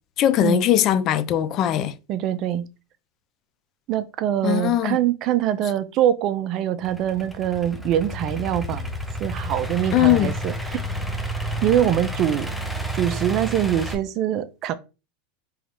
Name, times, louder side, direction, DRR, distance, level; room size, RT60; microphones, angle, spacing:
voice 1, 0.2-1.9 4.4-5.0 9.9-10.3, left 12 dB, 45° left, 0.3 m, -20 dB
voice 2, 2.1-2.7 3.9-8.9 9.2-10.8 11.6-12.5 12.9-14.7, right 11 dB, 45° right, 0.5 m, -23 dB
Idling / Accelerating revving vroom, 6.8-14.0, equal, ahead, 0.6 m, -30 dB
3.6 x 3.1 x 3.0 m
supercardioid pair, 120°, 0 cm